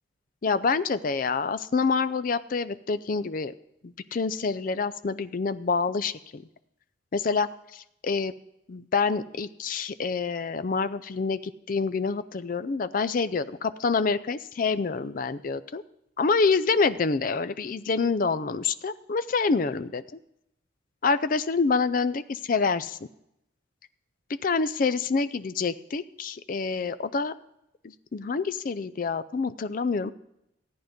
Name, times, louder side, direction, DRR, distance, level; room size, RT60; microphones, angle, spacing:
voice 1, 0.4-3.5 3.8-6.4 7.1-8.3 8.7-15.8 16.2-20.0 21.0-23.0 24.4-27.3 28.1-30.1, left 4 dB, 45° left, 14 dB, 0.4 m, -27 dB
14.5 x 9.5 x 5.1 m, 0.82 s
head